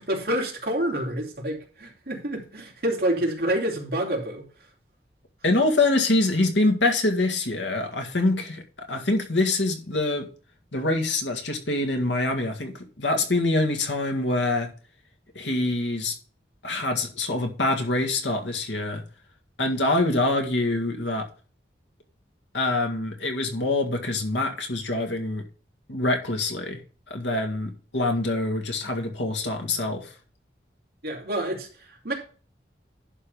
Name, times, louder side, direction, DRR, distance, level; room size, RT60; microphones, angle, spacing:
voice 1, 0.0-4.4 31.0-32.1, right 1 dB, 55° right, 3.0 m, -28 dB
voice 2, 5.4-8.6 8.9-10.3 10.7-14.7 15.4-16.2 16.6-19.0 19.6-21.3 22.5-25.4 25.9-26.8 27.1-30.1, left 2 dB, 85° left, 1.8 m, -25 dB
11.0 x 3.8 x 6.8 m
head